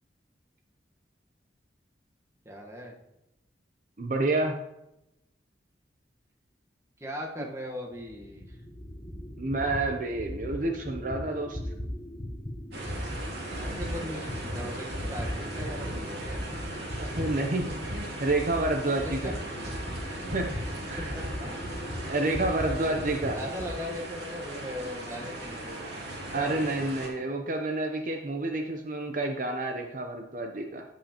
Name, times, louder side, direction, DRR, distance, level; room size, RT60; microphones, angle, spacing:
voice 1, 2.4-2.9 7.0-8.6 13.6-16.4 19.2-19.3 21.1-21.6 22.3-22.8 23.3-25.8 26.3-26.7, left 1 dB, 15° right, 0 dB, 1.3 m, -39 dB
voice 2, 4.0-4.6 9.4-11.6 17.0-19.4 20.3-20.5 20.9-21.1 22.1-23.4 26.3-30.8, right 2 dB, 45° right, 3 dB, 0.7 m, -29 dB
sound 1, 7.9-16.0 16.2-23.7, equal, 20° left, 1.1 m, -38 dB
sound 2, 12.7-27.1, right 1 dB, 65° right, 2.5 m, -38 dB
15.5 x 5.6 x 2.9 m, 0.89 s
head